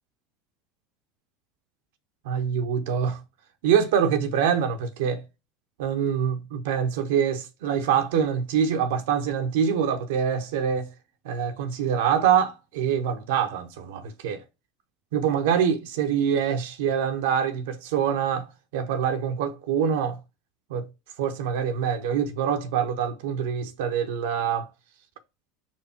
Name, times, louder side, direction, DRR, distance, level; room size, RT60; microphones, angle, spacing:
voice 1, 2.2-3.2 3.6-5.2 5.8-10.9 11.2-14.4 15.1-20.2 20.7-20.9 21.2-24.7, right 8 dB, 65° right, 0.8 m, -25 dB
5.1 x 4.5 x 4.3 m
figure-of-eight pair, 75°, 0 cm